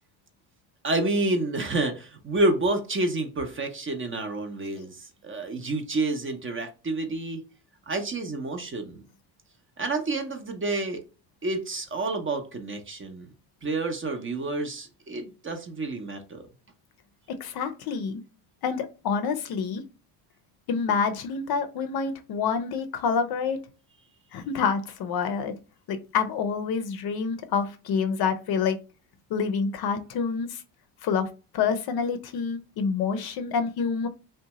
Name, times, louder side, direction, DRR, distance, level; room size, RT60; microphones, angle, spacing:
voice 1, 0.8-7.4 7.9-9.0 9.8-11.0 11.4-13.3 13.6-16.4, right 2 dB, 25° right, 6 dB, 0.6 m, -29 dB
voice 2, 17.4-18.2 18.6-19.8 20.7-23.6 24.3-25.5 25.9-28.8 29.3-30.6 31.0-31.3 31.5-34.1, left 6 dB, 50° left, 8 dB, 0.5 m, -27 dB
2.7 x 2.2 x 2.8 m, 0.32 s
supercardioid pair, 70°, 49 cm